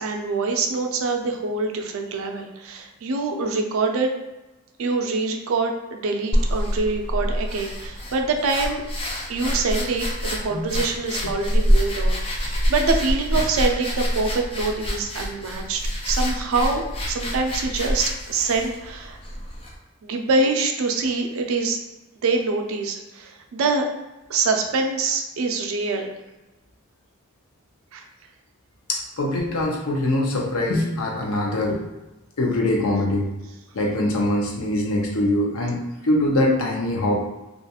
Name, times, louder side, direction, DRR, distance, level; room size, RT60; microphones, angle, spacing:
voice 1, 0.0-4.1 4.8-8.8 9.3-19.2 20.0-21.8 22.2-23.9 24.3-26.1 27.9-28.0, right 3 dB, 70° right, 3 dB, 0.4 m, -25 dB
sound 1, 6.3-19.8, equal, 25° left, 0.3 m, -26 dB
voice 2, 28.9-31.9 32.4-33.3 33.7-35.8 36.0-37.3, left 1 dB, 80° left, -1 dB, 0.6 m, -23 dB
2.4 x 2.3 x 2.8 m, 1.0 s
head